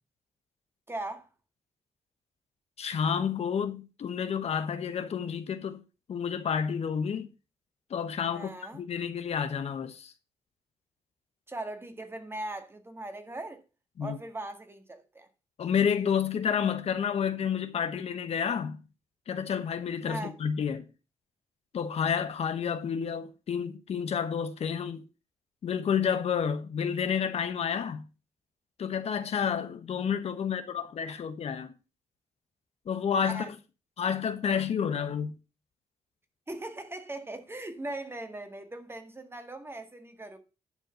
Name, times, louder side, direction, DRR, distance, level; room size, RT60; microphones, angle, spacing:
voice 1, 0.9-1.3 8.3-8.8 11.5-13.6 14.0-15.3 20.1-20.3 33.3-33.5 36.5-40.4, right 2 dB, 20° right, 1.9 m, -39 dB
voice 2, 2.8-5.8 6.1-7.3 7.9-10.1 14.0-14.2 15.6-18.8 19.3-20.9 21.7-25.0 25.6-28.1 28.8-31.7 32.9-33.5 34.0-35.3, left 7 dB, 65° left, 1.3 m, -30 dB
11.0 x 4.6 x 7.0 m
cardioid pair, 80°, 12 cm